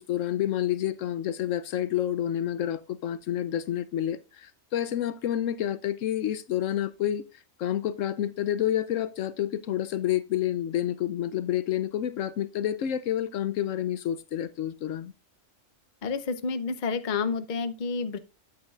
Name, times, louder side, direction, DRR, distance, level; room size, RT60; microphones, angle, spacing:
voice 1, 0.0-7.2 7.6-15.1, left 11 dB, 75° left, 0.9 m, -29 dB
voice 2, 16.0-18.2, left 5 dB, 45° left, 0.8 m, -29 dB
9.0 x 8.5 x 2.4 m
omnidirectional pair, 1.4 m